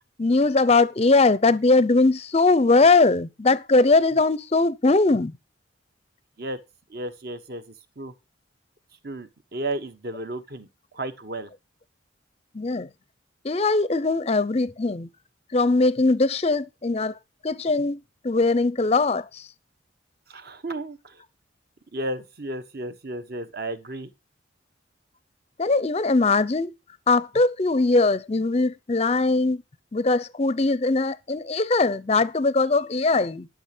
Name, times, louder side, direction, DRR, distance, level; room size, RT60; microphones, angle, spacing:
voice 1, 0.2-5.3 12.5-12.9 13.4-15.1 15.5-17.2 17.4-18.0 18.2-19.4 25.6-26.7 27.1-29.6 29.9-33.5, left 3 dB, 30° left, 0.5 m, -20 dB
voice 2, 6.9-8.1 9.0-10.7 10.9-11.5 20.3-21.2 21.9-24.1, right 1 dB, 50° right, 1.2 m, -33 dB
12.0 x 6.1 x 6.0 m
head